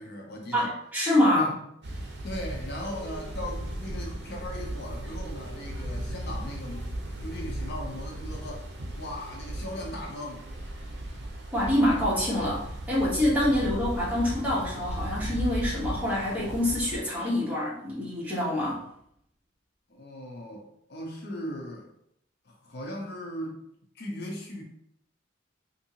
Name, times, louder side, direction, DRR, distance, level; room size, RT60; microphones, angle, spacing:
voice 1, 0.0-0.7 1.4-1.6 2.2-6.9 7.2-8.7 8.9-10.4 13.5-13.7 14.6-14.7 19.9-21.9 22.5-23.6 23.9-24.6, left 1 dB, 55° left, 0 dB, 0.6 m, -38 dB
voice 2, 0.5-1.5 11.5-18.8, left 1 dB, 10° right, -7 dB, 1.0 m, -26 dB
sound 1, 1.8-17.0, right 1 dB, 55° right, 0.6 m, -36 dB
3.6 x 2.6 x 2.8 m, 0.74 s
head